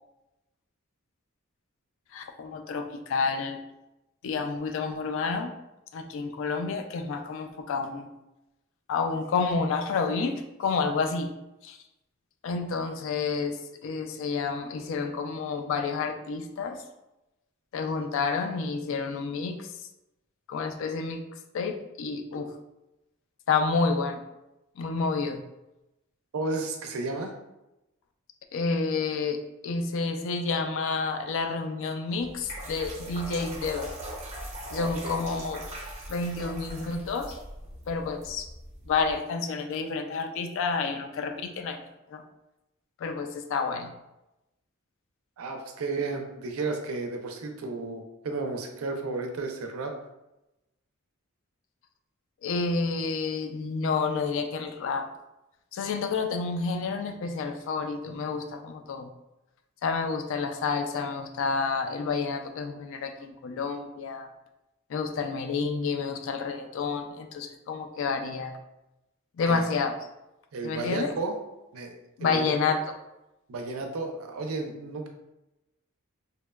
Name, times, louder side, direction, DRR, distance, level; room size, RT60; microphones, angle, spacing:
voice 1, 2.1-3.6 4.2-5.5 5.9-8.1 8.9-11.3 11.6-11.8 12.4-16.8 17.7-19.7 20.5-21.2 21.5-22.5 23.5-24.2 24.8-25.4 28.5-33.9 34.7-35.6 36.1-37.4 37.9-38.5 38.9-41.8 42.1-42.2 43.0-43.9 52.4-55.1 55.7-59.1 59.8-64.3 64.9-68.5 69.4-70.0 70.6-71.1 72.2-72.8, left 4 dB, 65° left, 6 dB, 0.3 m, -29 dB
voice 2, 26.3-27.3 34.8-35.2 45.4-49.9 69.5-69.7 70.5-71.3 71.7-72.5 73.5-75.1, right 3 dB, 85° right, 4 dB, 0.4 m, -33 dB
sound 1, 32.2-39.2, right 1 dB, 30° right, 0.5 m, -41 dB
2.7 x 2.1 x 2.2 m, 0.94 s
head